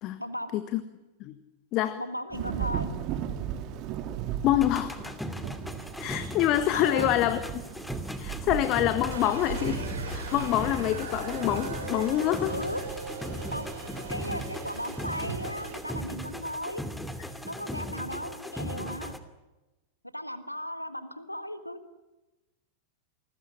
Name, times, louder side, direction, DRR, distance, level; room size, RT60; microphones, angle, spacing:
voice 1, 0.2-0.5 2.0-2.9 6.7-7.1 12.5-12.8 13.5-13.8 14.1-16.8 17.4-19.1 20.1-21.8, equal, 90° left, 12 dB, 1.6 m, -36 dB
Thunder / Rain, 2.3-17.9, right 10 dB, 40° right, 2.7 m, -39 dB
voice 2, 4.4-5.1 6.0-7.4 8.2-12.5, left 13 dB, 40° left, 12 dB, 1.6 m, -26 dB
sound 1, 4.6-19.2, equal, 5° left, 2.6 m, -38 dB
sound 2, 9.1-15.8, right 4 dB, 65° right, 6.2 m, -38 dB
29.0 x 20.0 x 9.9 m, 1.1 s
figure-of-eight pair, 90°, 0 cm